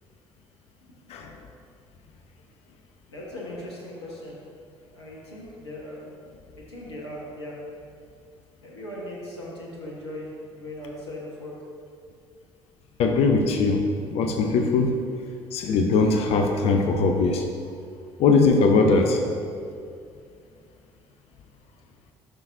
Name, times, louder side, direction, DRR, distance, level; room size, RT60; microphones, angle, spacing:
voice 1, 3.1-4.4 4.9-6.2 6.6-7.5 8.6-11.5 17.4-17.5, left 1 dB, 80° left, -4 dB, 1.3 m, -38 dB
voice 2, 13.0-15.0 15.5-17.4 18.2-19.2, left 4 dB, 50° left, 4 dB, 0.7 m, -20 dB
12.0 x 5.8 x 2.6 m, 2.3 s
figure-of-eight pair, 55°, 14 cm